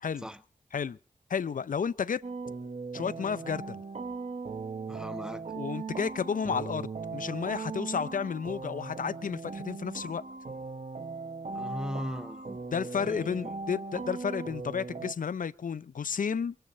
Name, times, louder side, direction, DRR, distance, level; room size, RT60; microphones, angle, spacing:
voice 1, 1.3-2.2 2.9-3.8 5.5-10.2 12.7-16.6, left 6 dB, 75° left, 0.6 m, -32 dB
sound 1, 2.2-15.1, right 4 dB, 60° right, 1.1 m, -39 dB
voice 2, 4.9-5.4 11.5-12.6 13.1-13.5, equal, 5° right, 1.1 m, -38 dB
23.0 x 9.1 x 5.4 m
cardioid pair, 55°, 14 cm